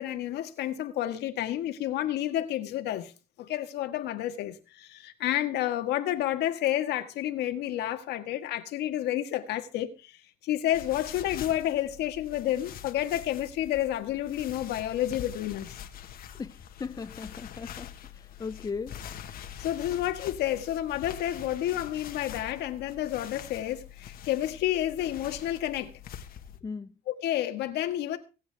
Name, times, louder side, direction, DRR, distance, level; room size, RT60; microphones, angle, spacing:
voice 1, 0.0-3.1 3.4-15.8 19.6-25.9 27.1-28.2, left 12 dB, 80° left, 1.7 m, -30 dB
sound 1, 10.7-26.6, left 9 dB, 60° left, 1.5 m, -44 dB
voice 2, 16.8-17.9 18.4-19.0 26.6-26.9, left 5 dB, 20° left, 0.6 m, -36 dB
25.0 x 8.7 x 3.5 m
cardioid pair, 110°, 17 cm